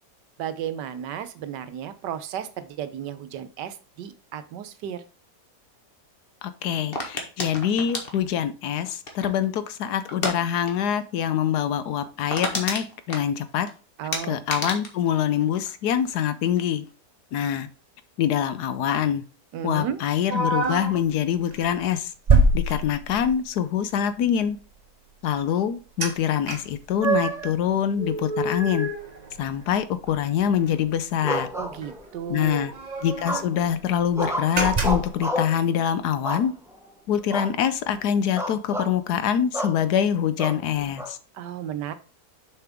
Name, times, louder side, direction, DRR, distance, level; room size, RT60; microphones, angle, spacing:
voice 1, 0.4-5.0 14.0-14.4 19.5-20.0 31.5-32.7 41.4-41.9, right 9 dB, 80° right, 1.4 m, -33 dB
voice 2, 6.4-13.7 14.2-16.8 17.3-17.7 18.2-19.2 19.6-22.1 22.5-24.6 25.2-28.9 29.4-31.5 32.3-32.7 33.0-36.5 37.1-41.2, left 9 dB, 70° left, 1.2 m, -25 dB
sound 1, 6.9-9.5 10.1-10.4 10.7-10.9 11.2-11.3 11.7-11.8 12.0-13.7 14.1-16.1 16.4-16.9, left 2 dB, 35° left, 1.5 m, -31 dB
sound 2, 20.3-21.0 21.5-21.7 22.3-23.4 26.0-26.1 26.5-27.5 27.9-29.8 30.1-30.2 30.5-30.7 31.8-31.9 32.1-32.2 32.7-33.6 34.0-34.2 34.6-35.2, right 2 dB, 30° right, 0.9 m, -25 dB
sound 3, 31.2-32.3 33.2-33.7 34.1-35.6 36.2-36.8 37.3-37.6 37.9-38.0 38.4-38.9 39.5-39.8 40.4-41.1, equal, 5° right, 0.5 m, -30 dB
7.0 x 5.8 x 3.5 m
omnidirectional pair, 1.8 m